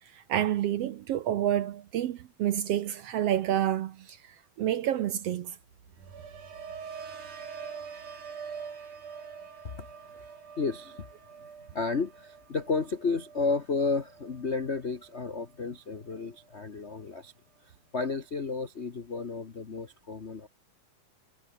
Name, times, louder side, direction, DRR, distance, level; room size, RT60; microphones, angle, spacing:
voice 1, 0.1-5.6, right 11 dB, 65° right, 1.7 m, -29 dB
sound 1, 5.6-15.7 16.0-16.5, right 6 dB, 90° right, 5.1 m, -45 dB
voice 2, 10.6-11.1 11.7-17.3 17.9-20.5, left 4 dB, 75° left, 0.6 m, -32 dB
omnidirectional pair, 3.5 m